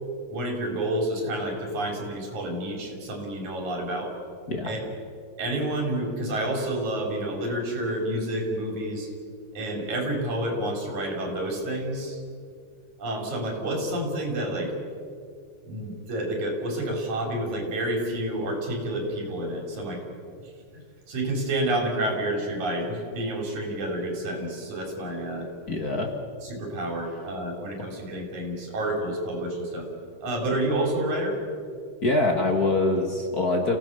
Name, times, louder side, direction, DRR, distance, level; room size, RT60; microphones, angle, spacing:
voice 1, 0.3-4.1 4.6-4.8 5.4-9.1 9.5-12.2 13.0-14.7 15.6-20.1 20.4-20.5 21.1-25.5 26.4-29.9 30.2-31.4, right 1 dB, 80° right, 2 dB, 5.3 m, -29 dB
voice 2, 25.7-26.1 32.0-33.8, left 2 dB, 40° left, 2 dB, 1.8 m, -24 dB
28.0 x 17.0 x 6.9 m, 2.3 s
omnidirectional pair, 3.3 m